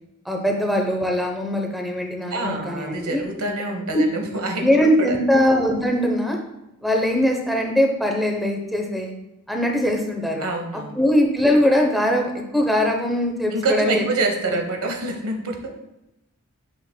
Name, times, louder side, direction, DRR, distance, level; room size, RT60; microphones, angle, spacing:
voice 1, 0.3-3.2 3.9-4.0 4.6-6.4 6.8-9.1 9.5-10.4 11.0-14.0 14.5-14.6, equal, ahead, 2 dB, 0.8 m, -21 dB
voice 2, 2.3-5.2 10.4-11.0 13.5-15.7, right 2 dB, 90° right, 3 dB, 1.1 m, -26 dB
8.7 x 5.9 x 2.2 m, 0.90 s
head